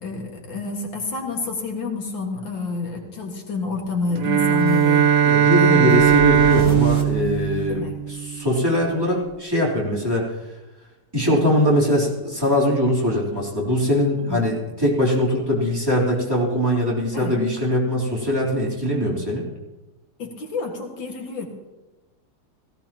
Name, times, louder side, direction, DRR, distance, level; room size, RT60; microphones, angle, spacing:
voice 1, 0.0-5.1 5.6-6.0 7.7-8.0 14.2-14.4 17.1-17.3 20.2-21.5, left 3 dB, 90° left, 1 dB, 2.7 m, -28 dB
Bowed string instrument, 4.1-8.5, right 9 dB, 65° right, 1.3 m, -18 dB
sound 1, 4.6-8.0, right 3 dB, 30° right, 2.1 m, -34 dB
voice 2, 5.2-10.3 11.1-19.5, left 1 dB, 10° right, -6 dB, 3.3 m, -22 dB
18.0 x 16.0 x 3.0 m, 1.1 s
omnidirectional pair, 2.0 m